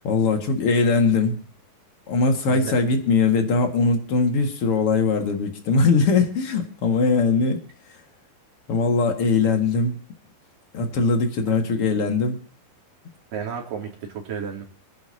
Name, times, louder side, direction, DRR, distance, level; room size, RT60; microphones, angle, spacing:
voice 1, 0.0-1.4 2.1-7.6 8.7-10.0 10.7-12.4, left 4 dB, 45° left, 3 dB, 2.5 m, -21 dB
voice 2, 13.3-14.6, right 7 dB, 70° right, 0 dB, 4.5 m, -32 dB
27.0 x 10.0 x 2.8 m, 0.43 s
omnidirectional pair, 4.1 m